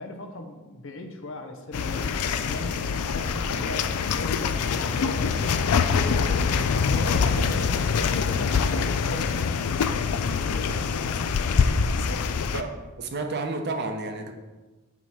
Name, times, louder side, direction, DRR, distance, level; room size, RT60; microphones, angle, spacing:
voice 1, 0.0-2.8 3.1-11.2 11.9-12.3, left 2 dB, 60° left, 5 dB, 0.8 m, -39 dB
sound 1, 1.7-12.6, left 5 dB, 90° left, 0.4 m, -25 dB
sound 2, 2.0-4.1 4.5-9.5, equal, 5° right, 0.5 m, -45 dB
voice 2, 12.5-14.3, right 3 dB, 50° right, 5 dB, 0.7 m, -31 dB
7.1 x 4.6 x 4.2 m, 1.2 s
head